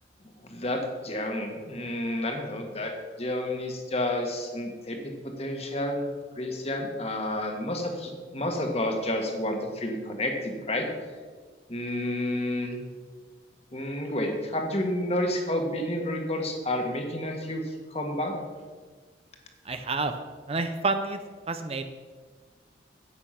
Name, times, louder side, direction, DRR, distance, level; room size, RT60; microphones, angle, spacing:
voice 1, 0.4-6.1 6.4-10.9 11.7-12.8 13.7-18.3, left 1 dB, 35° left, 3 dB, 1.6 m, -30 dB
voice 2, 19.7-20.1 20.5-21.2 21.5-21.8, right 3 dB, 30° right, 8 dB, 0.6 m, -28 dB
10.0 x 8.4 x 5.8 m, 1.5 s
head